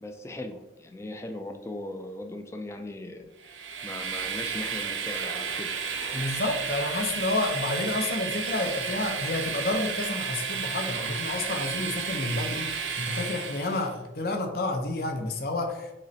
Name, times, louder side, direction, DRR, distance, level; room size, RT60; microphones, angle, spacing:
voice 1, 0.0-5.7, left 1 dB, 15° left, 5 dB, 0.3 m, -39 dB
Train, 3.4-13.9, right 6 dB, 85° right, 0.6 m, -32 dB
voice 2, 6.1-15.9, left 2 dB, 55° left, 4 dB, 0.6 m, -30 dB
3.9 x 3.2 x 3.9 m, 1.0 s
head